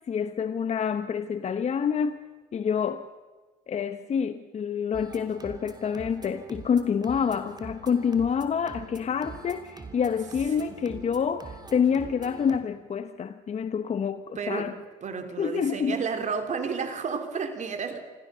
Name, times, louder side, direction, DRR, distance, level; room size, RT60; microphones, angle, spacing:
voice 1, 0.0-2.2 2.5-3.1 3.7-14.7 15.4-16.0, left 7 dB, 40° left, 1.0 m, -27 dB
sound 1, 4.9-12.6, right 3 dB, 25° right, 3.0 m, -44 dB
voice 2, 14.4-14.7 15.0-18.0, right 5 dB, 45° right, 3.4 m, -31 dB
25.0 x 15.5 x 6.9 m
supercardioid pair, 75°, 17 cm